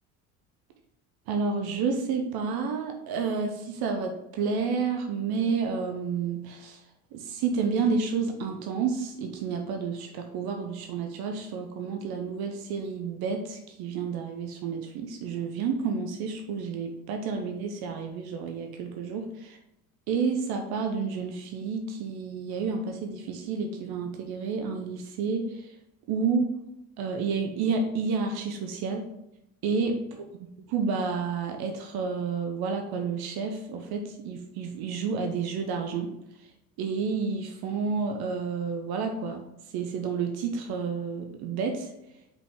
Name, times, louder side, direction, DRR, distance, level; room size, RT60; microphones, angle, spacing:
voice 1, 1.3-6.8 7.1-19.6 20.1-25.7 26.1-26.5 27.0-29.1 29.6-30.0 30.7-36.1 36.8-39.4 39.7-41.9, right 5 dB, 50° right, 4 dB, 0.9 m, -30 dB
5.3 x 5.2 x 3.7 m, 0.84 s
figure-of-eight pair, 60°, 49 cm